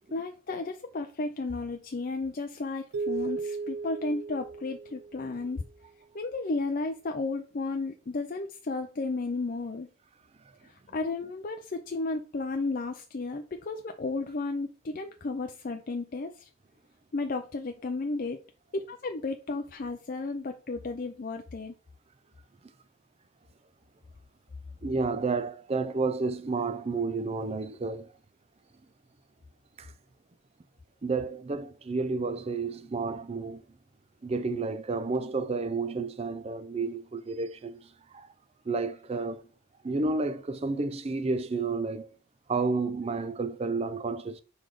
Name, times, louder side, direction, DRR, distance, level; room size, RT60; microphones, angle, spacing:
voice 1, 0.1-5.6 6.1-9.9 10.9-16.5 17.1-18.4 18.7-21.7, left 3 dB, 40° left, 0.5 m, -33 dB
sound 1, 2.9-5.5, right 4 dB, 90° right, 0.4 m, -35 dB
voice 2, 24.8-28.1 29.8-29.9 31.0-33.6 34.2-38.3 38.7-39.4 39.8-42.1 42.5-44.4, right 3 dB, 30° right, 0.4 m, -31 dB
5.0 x 4.0 x 4.7 m
head